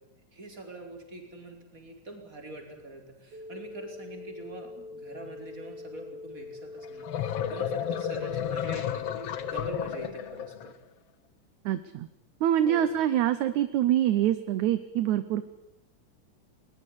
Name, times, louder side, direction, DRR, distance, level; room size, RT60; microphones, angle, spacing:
voice 1, 0.3-10.7 12.6-12.9, right 2 dB, 25° right, 3 dB, 5.0 m, -44 dB
sound 1, 3.3-8.3, left 3 dB, 50° right, 6.0 m, -44 dB
sound 2, 6.8-10.7, left 9 dB, 60° left, 1.9 m, -32 dB
voice 2, 11.7-12.1 12.4-15.4, right 11 dB, 70° right, 13 dB, 2.2 m, -25 dB
21.0 x 21.0 x 8.6 m, 0.86 s
omnidirectional pair, 3.7 m